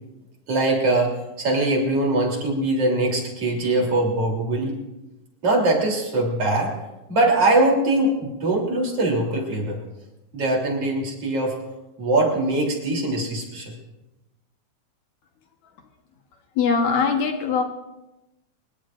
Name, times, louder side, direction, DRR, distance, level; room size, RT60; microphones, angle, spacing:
voice 1, 0.5-4.7 5.4-6.7 7.1-9.8 10.3-11.6 12.0-13.7, right 2 dB, 50° right, 0 dB, 4.3 m, -22 dB
voice 2, 16.6-17.6, left 5 dB, 70° left, 3 dB, 2.5 m, -21 dB
25.0 x 22.0 x 2.6 m, 0.97 s
omnidirectional pair, 3.5 m